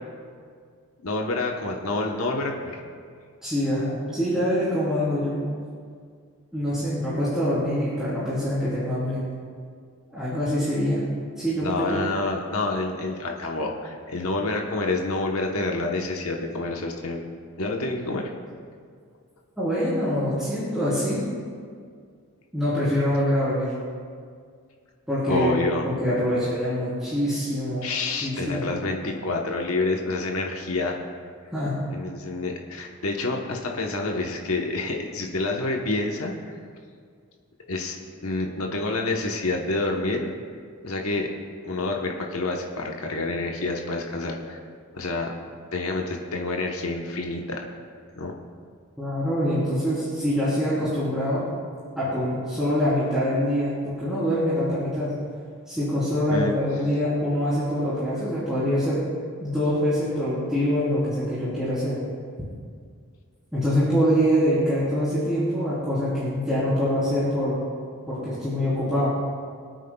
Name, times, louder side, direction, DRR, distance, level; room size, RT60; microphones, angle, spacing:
voice 1, 1.0-2.8 11.6-17.2 17.6-18.3 25.3-25.9 27.8-31.0 31.9-36.5 37.7-38.0 38.2-40.4 40.8-41.3 41.6-44.6 44.9-45.3 45.7-47.6 48.1-48.3 56.3-56.5, left 2 dB, 85° left, 1 dB, 1.1 m, -28 dB
voice 2, 3.4-5.4 6.5-9.2 10.1-11.0 11.4-12.0 19.6-21.2 22.5-23.7 25.1-25.5 25.8-27.9 28.2-28.7 31.5-31.7 49.0-51.4 52.0-55.1 55.7-59.0 59.4-62.0 63.5-67.7 68.1-69.1, equal, 5° right, -11 dB, 3.6 m, -24 dB
27.5 x 9.2 x 2.3 m, 2.1 s
head